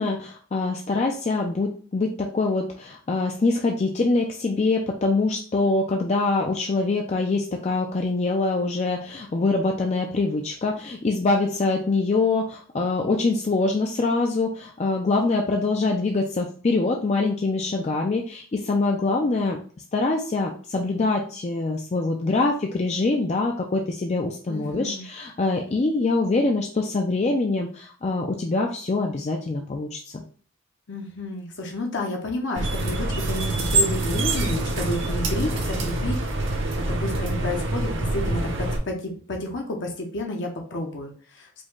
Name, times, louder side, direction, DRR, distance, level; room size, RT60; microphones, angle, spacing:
voice 1, 0.0-19.6 19.9-30.2, left 3 dB, 30° left, 1 dB, 0.4 m, -24 dB
voice 2, 24.5-25.1 30.9-41.6, left 1 dB, 55° left, 1 dB, 0.7 m, -31 dB
sound 1, 32.6-38.8, right 2 dB, 60° right, 0.9 m, -25 dB
5.1 x 2.2 x 3.7 m, 0.44 s
head